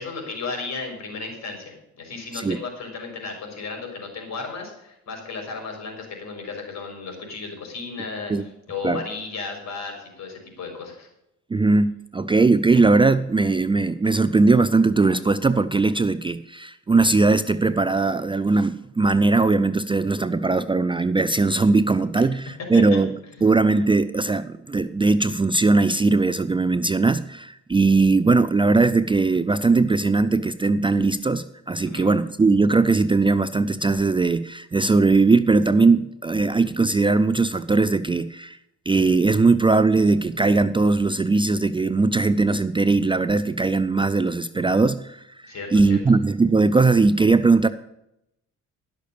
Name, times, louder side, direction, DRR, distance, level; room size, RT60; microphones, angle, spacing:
voice 1, 0.0-11.1 22.2-22.3 22.7-23.0 23.4-23.5 31.8-32.1 45.4-46.0, left 4 dB, 60° left, 2 dB, 4.4 m, -34 dB
voice 2, 11.5-23.1 23.4-38.6 38.9-45.2 45.7-47.7, right 3 dB, 15° right, 13 dB, 0.4 m, -19 dB
11.5 x 6.6 x 6.9 m, 0.82 s
cardioid pair, 90°, 30 cm